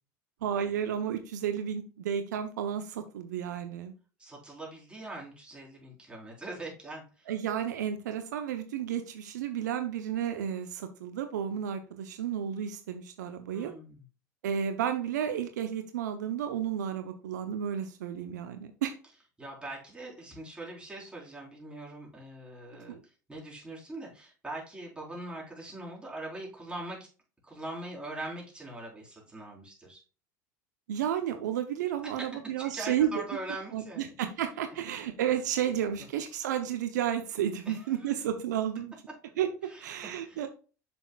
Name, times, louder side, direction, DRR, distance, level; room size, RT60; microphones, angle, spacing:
voice 1, 0.4-3.9 7.3-13.7 14.4-19.0 22.9-23.0 30.9-33.2 33.7-38.9 39.4-40.5, right 9 dB, 80° right, 8 dB, 0.7 m, -32 dB
voice 2, 4.2-7.3 13.5-14.0 19.4-23.0 23.3-27.0 27.4-30.0 32.0-32.3 32.6-34.1 37.7-37.9 39.7-39.8 40.3-40.4, right 2 dB, 10° right, -3 dB, 3.7 m, -42 dB
7.0 x 6.2 x 2.3 m, 0.35 s
hypercardioid pair, 80°, 9 cm